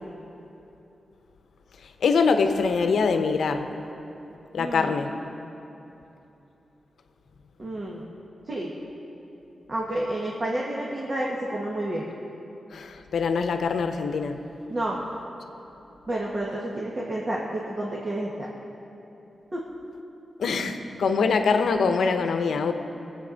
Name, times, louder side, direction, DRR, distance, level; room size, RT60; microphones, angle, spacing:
voice 1, 1.8-3.7 4.5-5.2 12.7-14.4 20.4-22.7, left 5 dB, 85° left, 7 dB, 0.8 m, -24 dB
voice 2, 4.6-5.0 7.6-8.0 8.5-8.7 9.7-12.1 14.7-15.0 16.1-18.5 19.5-19.6, right 1 dB, 35° right, -3 dB, 1.4 m, -30 dB
21.0 x 8.0 x 4.0 m, 3.0 s
wide cardioid pair, 105°, 0 cm